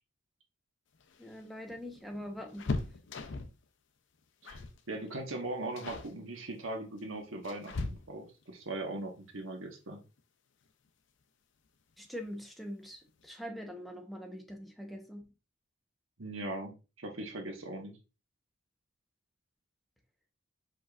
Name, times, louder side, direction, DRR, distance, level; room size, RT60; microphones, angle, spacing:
sound 1, 0.9-3.6 4.4-4.8 5.1-5.3 5.8-6.1 7.0-8.4 10.2-10.3 10.7-10.8 11.9-12.4 12.7-12.8 13.1-13.3, left 3 dB, 65° left, 0.6 m, -39 dB
voice 1, 1.2-2.8 12.0-15.3, equal, ahead, 0.8 m, -43 dB
voice 2, 4.9-10.0 16.2-16.7 17.0-18.0, right 2 dB, 85° right, 1.3 m, -39 dB
4.9 x 4.4 x 2.4 m
head